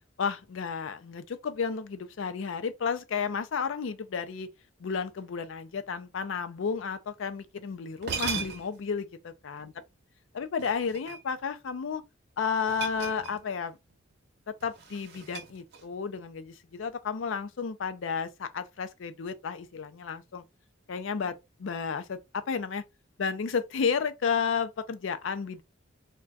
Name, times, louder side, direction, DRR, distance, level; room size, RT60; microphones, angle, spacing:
voice 1, 0.2-4.5 4.8-9.7 10.3-12.0 12.4-13.8 14.5-20.4 20.9-22.8 23.2-25.6, left 6 dB, 70° left, 0.4 m, -32 dB
sound 1, 7.6-7.7 8.0-8.9 10.6-11.5 12.7-13.6 13.9-14.1 14.6-16.0, right 6 dB, 55° right, 0.7 m, -38 dB
2.3 x 2.2 x 3.9 m
head